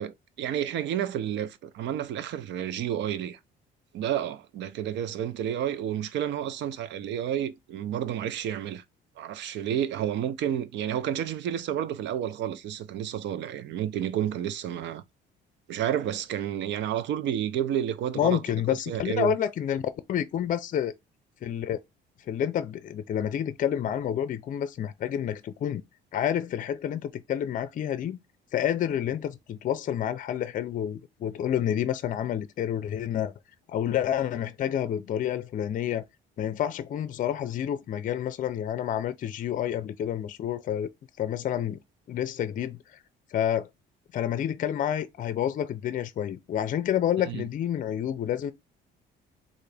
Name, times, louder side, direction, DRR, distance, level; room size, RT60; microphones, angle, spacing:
voice 1, 0.0-3.4 3.9-8.8 9.2-15.0 15.7-18.4 18.9-19.4 47.2-47.4, right 10 dB, 70° right, 0.5 m, -30 dB
voice 2, 18.1-19.8 20.1-20.9 21.4-21.8 22.3-25.8 26.1-28.2 28.5-33.3 33.7-36.0 36.4-40.9 41.2-41.8 42.1-42.8 43.3-43.7 44.1-48.5, left 10 dB, 45° left, 0.5 m, -29 dB
3.8 x 2.5 x 3.3 m
cardioid pair, 120°, 19 cm